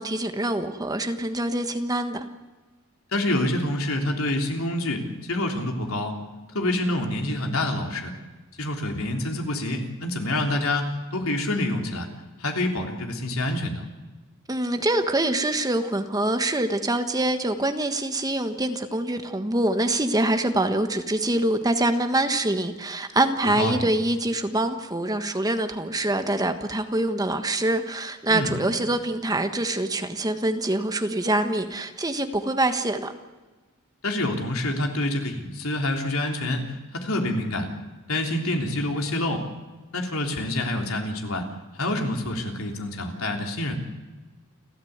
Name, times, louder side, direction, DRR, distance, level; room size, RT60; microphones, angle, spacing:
voice 1, 0.0-2.2 14.5-33.1, right 1 dB, 20° right, 7 dB, 1.4 m, -25 dB
voice 2, 3.1-6.2 6.5-8.1 8.6-12.1 12.4-13.8 23.4-23.8 28.3-28.6 34.0-37.7 38.1-39.4 39.9-41.4 41.7-43.7, left 1 dB, 75° left, 3 dB, 3.5 m, -27 dB
29.5 x 13.5 x 8.1 m, 1.2 s
head